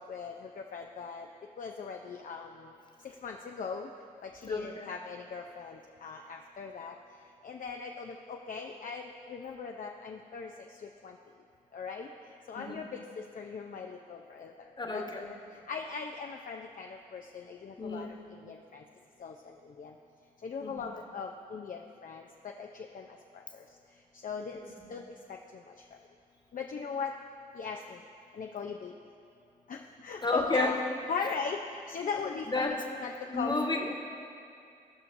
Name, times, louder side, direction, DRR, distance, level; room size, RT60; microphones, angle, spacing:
voice 1, 0.1-1.3 1.6-2.5 3.2-3.9 4.2-6.9 7.4-10.5 11.0-11.1 11.7-12.1 12.5-14.5 14.9-15.0 15.3-15.4 15.7-18.1 18.4-18.8 19.2-19.3 19.8-19.9 20.4-22.7 22.9-23.0 24.2-24.6 24.9-25.0 25.3-25.4 26.5-27.1 27.6-28.0 28.4-28.9 29.7-30.7 31.1-31.6 31.9-32.8 33.0-33.6, left 5 dB, 45° left, 2 dB, 0.5 m, -39 dB
voice 2, 4.4-4.9 12.5-12.9 14.8-15.3 17.8-18.1 20.6-20.9 24.5-24.9 30.2-30.8 31.2-31.3 32.5-32.8 33.3-33.9, left 2 dB, 25° left, 1 dB, 1.3 m, -32 dB
16.5 x 5.8 x 2.6 m, 2.5 s
hypercardioid pair, 40°, 19 cm